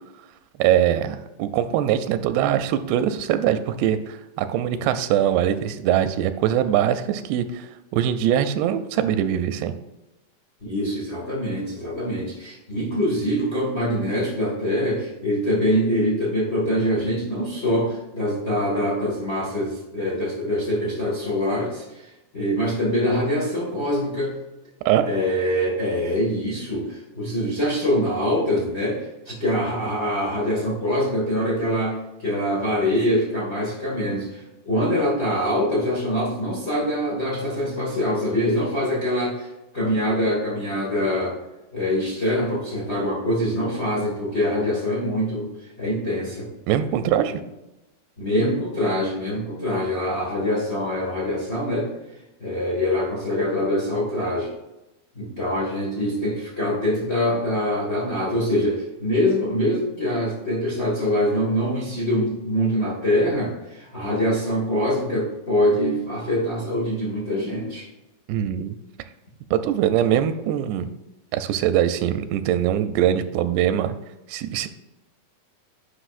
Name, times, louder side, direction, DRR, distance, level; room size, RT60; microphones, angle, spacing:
voice 1, 0.6-9.7 24.9-25.0 46.7-47.4 68.3-68.8 69.5-70.9 71.3-73.9 74.3-74.7, right 10 dB, 90° right, 11 dB, 2.6 m, -22 dB
voice 2, 10.6-24.3 25.0-41.4 41.7-45.5 45.8-46.5 47.3-47.4 48.2-51.9 52.4-54.5 55.1-67.9, equal, 50° left, -4 dB, 0.8 m, -24 dB
10.0 x 5.9 x 2.5 m, 0.97 s
omnidirectional pair, 4.6 m